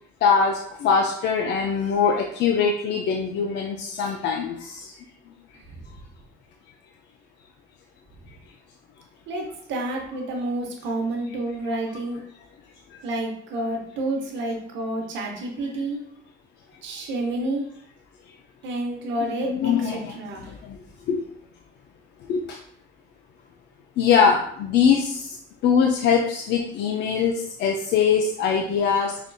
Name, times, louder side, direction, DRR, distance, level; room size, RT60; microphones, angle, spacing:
voice 1, 0.2-4.9 19.4-20.2 20.5-20.8 21.1-21.2 22.3-22.6 24.0-25.4 25.6-29.2, left 6 dB, 65° left, 1 dB, 0.4 m, -22 dB
voice 2, 9.3-12.2 13.0-16.0 16.8-17.7 18.6-20.5, right 2 dB, 80° right, 1 dB, 0.9 m, -29 dB
5.1 x 2.5 x 2.2 m, 0.65 s
cardioid pair, 145°, 19 cm